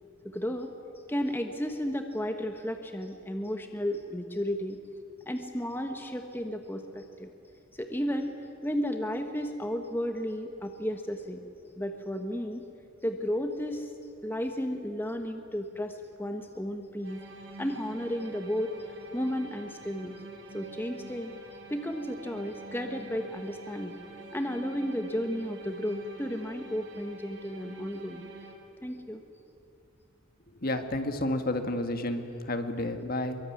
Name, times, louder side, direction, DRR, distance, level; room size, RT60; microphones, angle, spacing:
voice 1, 0.2-0.7 1.1-4.8 5.3-7.3 7.7-8.3 8.6-11.5 11.8-12.6 13.0-13.9 14.2-17.2 17.6-20.2 20.5-21.3 21.7-24.0 24.3-28.2 28.8-29.2 32.8-32.9, equal, 10° left, 5 dB, 1.2 m, -33 dB
sound 1, 17.0-28.5, right 2 dB, 60° right, 4.5 m, -47 dB
voice 2, 30.6-33.4, left 1 dB, 45° left, 7 dB, 1.7 m, -31 dB
24.0 x 23.0 x 9.5 m, 2.5 s
head